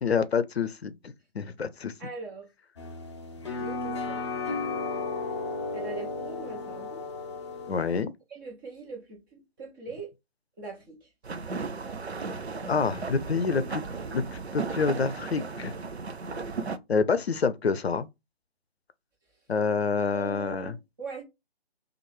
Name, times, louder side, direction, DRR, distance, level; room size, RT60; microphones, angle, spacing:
voice 1, 0.0-1.9 7.7-8.1 12.7-13.8 14.1-15.8 16.9-18.1 19.5-20.7, left 5 dB, 75° left, 0.6 m, -27 dB
voice 2, 2.0-2.5 3.5-4.3 5.7-7.1 8.3-10.1 10.6-11.1 20.1-21.2, right 4 dB, 20° right, 1.1 m, -41 dB
sound 1, 2.8-8.0, left 3 dB, 30° left, 0.6 m, -34 dB
sound 2, 11.2-16.8, right 4 dB, 85° right, 0.6 m, -35 dB
3.0 x 2.5 x 4.3 m
figure-of-eight pair, 145°, 32 cm